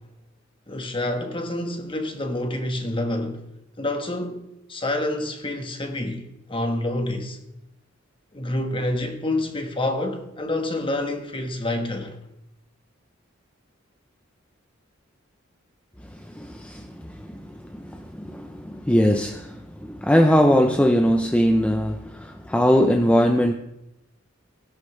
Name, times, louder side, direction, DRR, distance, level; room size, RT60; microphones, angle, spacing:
voice 1, 0.7-3.4 3.8-7.4 8.3-12.2, left 1 dB, 25° left, 1.4 m, -28 dB
voice 2, 16.3-23.5, equal, 5° left, 0.6 m, -21 dB
16.5 x 11.0 x 3.2 m
head